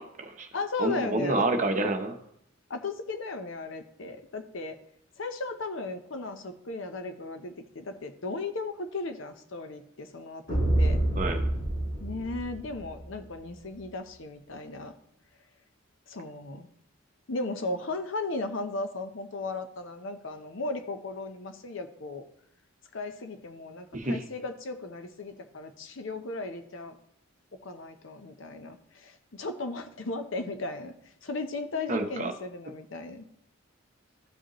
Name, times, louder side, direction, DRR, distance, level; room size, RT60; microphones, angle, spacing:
voice 1, 0.0-0.5 0.8-2.2 11.1-11.5 23.9-24.2 31.9-32.3, right 2 dB, 35° right, 5 dB, 0.8 m, -28 dB
voice 2, 0.5-1.5 2.7-4.8 5.2-11.0 12.0-14.9 16.1-16.7 17.3-22.2 22.9-27.0 27.6-30.9 31.2-33.2, left 3 dB, 65° left, 8 dB, 0.7 m, -36 dB
sound 1, 10.5-13.1, right 1 dB, 50° left, 3.2 m, -27 dB
12.5 x 5.1 x 3.0 m, 0.71 s
head